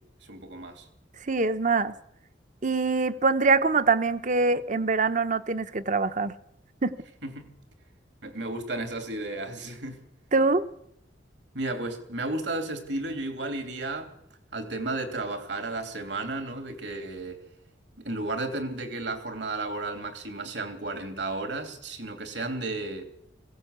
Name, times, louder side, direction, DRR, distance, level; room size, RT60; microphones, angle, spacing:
voice 1, 0.3-0.9 7.2-7.5 8.2-10.0 11.5-14.1 14.5-17.4 18.0-23.1, right 2 dB, 65° right, 3.0 m, -33 dB
voice 2, 1.3-1.9 2.6-6.3 6.8-6.9 10.3-10.6, right 4 dB, 45° right, 0.9 m, -24 dB
20.5 x 16.5 x 8.2 m
head